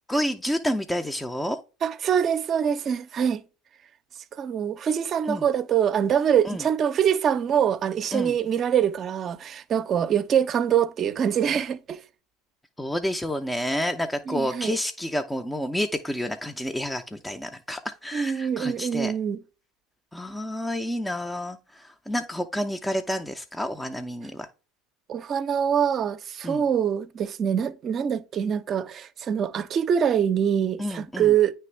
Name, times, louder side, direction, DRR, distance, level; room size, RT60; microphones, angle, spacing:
voice 1, 0.1-1.6 5.3-5.5 6.4-6.6 8.1-8.4 12.8-19.1 20.1-24.5 26.4-26.6 30.8-31.3, equal, 5° left, 0.5 m, -29 dB
voice 2, 1.8-3.4 4.4-12.0 14.3-14.8 18.1-19.4 25.1-31.5, right 8 dB, 40° right, 0.5 m, -24 dB
8.9 x 3.3 x 3.2 m
hypercardioid pair, 80°, 0 cm